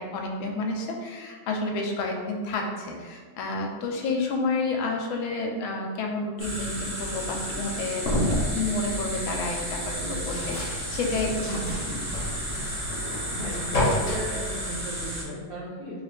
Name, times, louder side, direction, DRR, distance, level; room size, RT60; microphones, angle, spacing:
voice 1, 0.0-12.1, left 3 dB, 85° left, 2 dB, 1.4 m, -30 dB
sound 1, 6.4-15.2, equal, 45° right, 1.5 m, -33 dB
sound 2, 8.0-14.2, left 1 dB, 50° left, 0.9 m, -31 dB
voice 2, 13.4-16.0, equal, 65° right, -9 dB, 0.5 m, -36 dB
4.0 x 2.4 x 3.3 m, 1.5 s
omnidirectional pair, 2.2 m